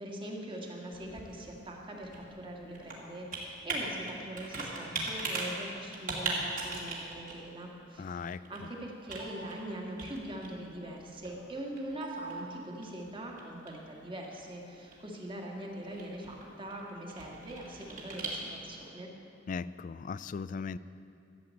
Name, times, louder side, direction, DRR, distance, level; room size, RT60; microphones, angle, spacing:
voice 1, 0.0-19.1, right 1 dB, 30° right, 0 dB, 1.8 m, -42 dB
Computer keyboard, 0.6-18.8, right 2 dB, 50° right, 2.4 m, -41 dB
voice 2, 8.0-8.5 19.5-20.8, left 5 dB, 45° left, 16 dB, 0.3 m, -38 dB
13.0 x 7.7 x 8.3 m, 2.6 s
head